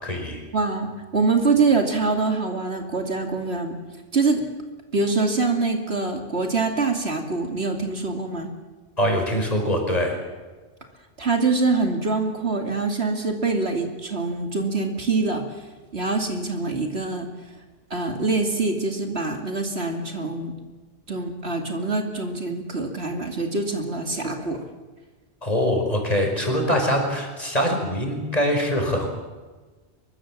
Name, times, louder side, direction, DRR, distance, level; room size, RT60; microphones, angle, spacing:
voice 1, 0.0-0.4 9.0-10.2 25.4-29.1, equal, 35° left, 2 dB, 5.1 m, -23 dB
voice 2, 0.5-3.8 4.1-4.5 4.9-8.5 11.2-15.4 15.9-17.3 17.9-20.5 21.1-24.6, right 3 dB, 70° right, 4 dB, 3.0 m, -24 dB
23.5 x 22.5 x 7.5 m, 1.3 s
omnidirectional pair, 1.1 m